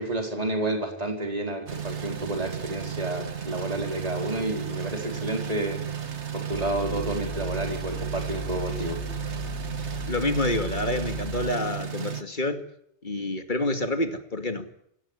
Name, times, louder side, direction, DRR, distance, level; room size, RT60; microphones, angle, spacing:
voice 1, 0.0-5.8 6.3-9.0, right 1 dB, 35° right, 4.7 m, -30 dB
sound 1, 1.7-12.2, right 8 dB, 85° right, 1.8 m, -34 dB
sound 2, 6.5-11.5, left 2 dB, 75° left, 4.5 m, -37 dB
voice 2, 10.1-12.6 13.0-14.7, left 2 dB, 45° left, 2.5 m, -28 dB
28.0 x 18.5 x 10.0 m
omnidirectional pair, 1.1 m